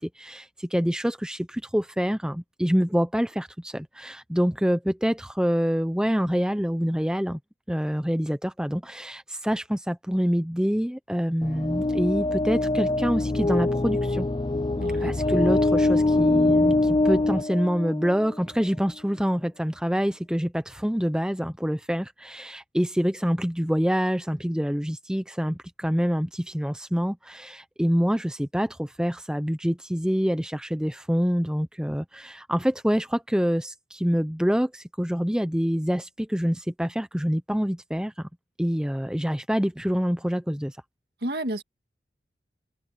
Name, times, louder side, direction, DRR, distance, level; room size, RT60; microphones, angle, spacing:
voice 1, 0.0-7.4 7.7-14.3 15.0-38.3 38.6-40.8, equal, 5° right, 0.7 m, -26 dB
sound 1, 11.4-18.3, left 2 dB, 25° left, 0.5 m, -24 dB
voice 2, 14.8-15.1 41.2-41.6, right 1 dB, 60° right, 2.0 m, -30 dB
head